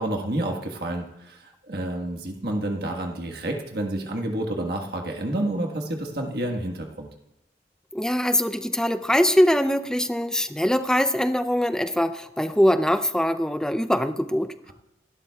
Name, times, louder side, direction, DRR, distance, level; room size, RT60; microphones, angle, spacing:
voice 1, 0.0-7.1, right 1 dB, 60° right, 2 dB, 1.5 m, -29 dB
voice 2, 7.9-14.7, equal, 5° left, 9 dB, 0.5 m, -22 dB
26.0 x 12.5 x 2.4 m, 0.88 s
head